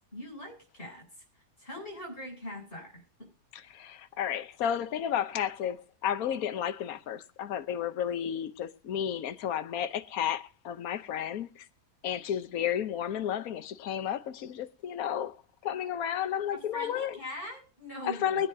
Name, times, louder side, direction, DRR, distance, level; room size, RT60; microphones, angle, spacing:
voice 1, 0.1-1.2 1.6-3.3 16.5-18.4, equal, 35° left, 7.9 m, -42 dB
voice 2, 3.5-11.7 12.0-15.4 15.6-17.2 18.0-18.5, left 9 dB, 65° left, 1.3 m, -32 dB
24.0 x 9.8 x 2.8 m
omnidirectional pair, 1.7 m